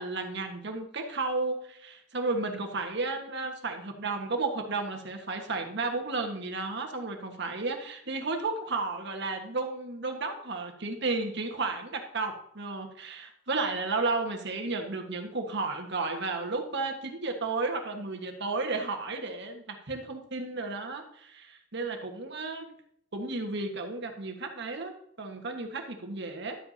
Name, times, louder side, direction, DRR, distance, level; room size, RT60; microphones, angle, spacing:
voice 1, 0.0-22.7 23.1-26.6, right 3 dB, 60° right, 4 dB, 1.6 m, -33 dB
11.5 x 7.8 x 2.8 m, 0.70 s
head